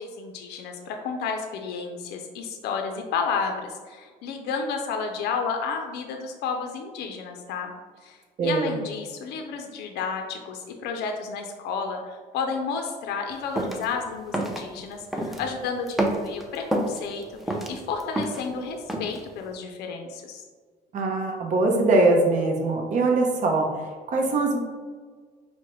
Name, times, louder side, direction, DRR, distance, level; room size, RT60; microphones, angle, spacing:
voice 1, 0.0-7.7 8.0-20.4, left 5 dB, 75° left, 4 dB, 0.4 m, -31 dB
voice 2, 8.4-8.8 20.9-23.7 24.1-24.6, right 2 dB, 50° right, 1 dB, 0.6 m, -22 dB
sound 1, 13.6-13.8 14.3-14.6 15.1-15.5 15.9-17.0 17.4-18.5 18.9-19.2, right 1 dB, ahead, 0.4 m, -27 dB
4.6 x 2.1 x 3.0 m, 1.5 s
cardioid pair, 110°, 17 cm